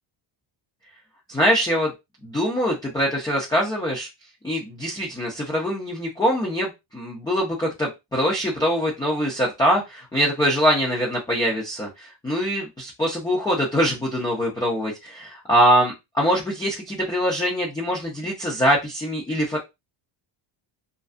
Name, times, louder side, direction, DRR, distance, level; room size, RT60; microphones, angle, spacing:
voice 1, 1.3-1.9 2.2-4.1 4.4-19.6, equal, 10° left, -3 dB, 0.3 m, -23 dB
2.5 x 2.2 x 2.4 m, 0.22 s
cardioid pair, 140°, 49 cm